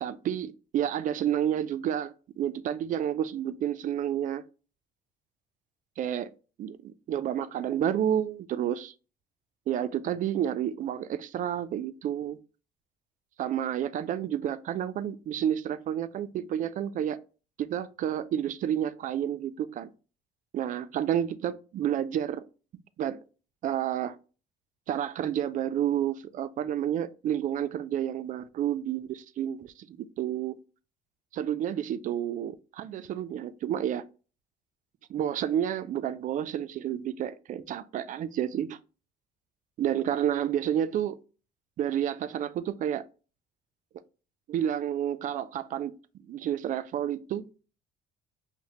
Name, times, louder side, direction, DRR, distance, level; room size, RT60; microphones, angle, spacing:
voice 1, 0.0-4.4 6.0-6.3 6.6-8.9 9.7-12.4 13.4-17.2 17.6-19.9 20.5-22.4 23.0-23.2 23.6-24.2 24.9-30.6 31.3-34.0 35.1-38.8 39.8-41.2 41.8-43.0 44.5-45.9 46.2-47.5, right 10 dB, 50° right, 0.4 m, -30 dB
5.4 x 2.1 x 2.9 m
cardioid pair, 110°, 17 cm